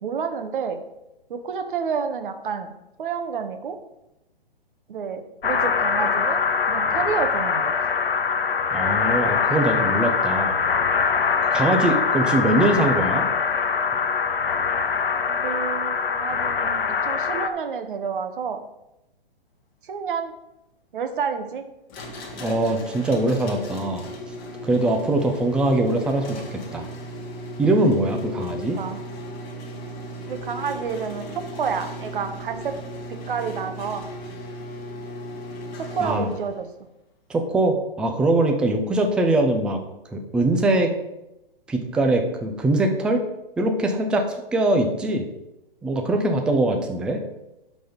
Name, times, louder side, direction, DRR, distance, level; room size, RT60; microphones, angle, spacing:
voice 1, 0.0-0.8 1.3-2.7 3.0-3.8 4.9-6.4 6.7-7.7 15.3-18.6 19.8-20.3 20.9-21.6 28.7-29.0 30.3-32.8 33.1-34.1 35.8-36.7, right 6 dB, 60° right, 7 dB, 1.3 m, -29 dB
sound 1, 5.4-17.5, left 6 dB, 70° left, 0.9 m, -23 dB
voice 2, 8.7-10.6 11.5-13.3 22.4-24.0 24.6-26.4 26.7-26.9 27.6-28.8 36.0-36.3 37.3-39.8 40.1-40.9 41.7-43.2 43.6-45.2 45.8-47.2, right 2 dB, 5° right, 4 dB, 0.4 m, -22 dB
sound 2, 21.9-36.6, equal, 30° left, 1.6 m, -36 dB
11.5 x 4.1 x 5.2 m, 0.90 s
hypercardioid pair, 135°, 29 cm